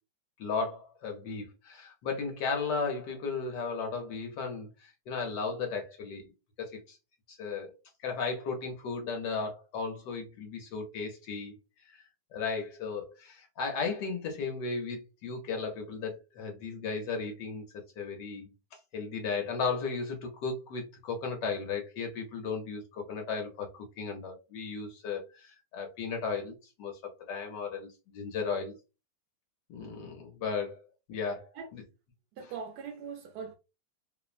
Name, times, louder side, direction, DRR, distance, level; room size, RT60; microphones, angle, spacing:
voice 1, 0.4-6.2 6.6-7.0 7.3-7.8 8.0-11.5 11.9-12.0 12.3-17.6 18.0-27.0 27.3-28.7 29.7-30.8 31.1-31.8, left 4 dB, 70° left, 1.2 m, -35 dB
voice 2, 32.3-33.5, right 6 dB, 75° right, 1.0 m, -41 dB
3.1 x 2.0 x 2.4 m
omnidirectional pair, 2.1 m